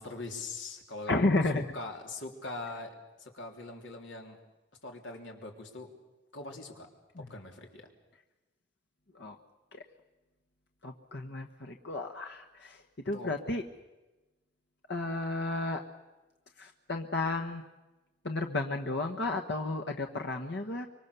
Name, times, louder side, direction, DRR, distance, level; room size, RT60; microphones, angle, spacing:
voice 1, 0.0-1.3 1.5-4.4 4.8-5.9 6.3-6.9 7.2-7.9 13.1-13.3, left 3 dB, 90° left, 2 dB, 3.4 m, -42 dB
voice 2, 1.1-1.6 7.1-7.3 9.1-9.4 9.7-9.8 10.8-13.6 14.9-15.8 16.6-17.6 18.2-20.9, left 2 dB, 65° left, 3 dB, 1.3 m, -32 dB
25.0 x 23.5 x 6.9 m, 1.1 s
head